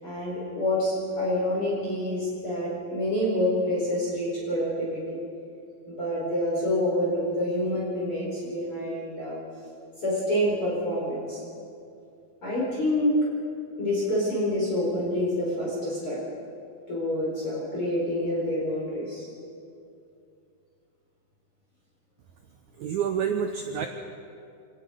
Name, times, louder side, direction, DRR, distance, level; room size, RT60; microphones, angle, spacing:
voice 1, 0.0-5.0 5.9-9.4 10.0-11.4 12.4-13.1 13.8-16.2 16.9-19.3, left 1 dB, 35° left, -6 dB, 5.2 m, -27 dB
voice 2, 22.8-23.9, right 7 dB, 85° right, 5 dB, 1.7 m, -28 dB
27.0 x 19.0 x 5.0 m, 2.5 s
omnidirectional pair, 4.5 m